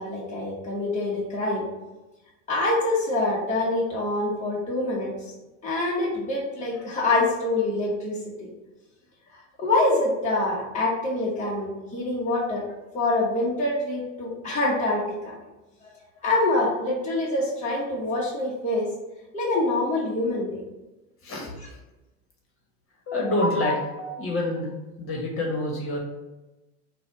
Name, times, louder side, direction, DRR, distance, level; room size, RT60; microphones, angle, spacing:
voice 1, 0.0-1.7 2.5-5.1 5.6-8.2 9.6-12.6 12.9-15.3 16.2-18.9 19.3-20.6, left 2 dB, 20° left, -6 dB, 1.2 m, -25 dB
voice 2, 23.1-24.7 25.0-26.0, left 1 dB, 35° left, -1 dB, 1.3 m, -26 dB
4.1 x 2.5 x 4.6 m, 1.0 s
supercardioid pair, 105°, 37 cm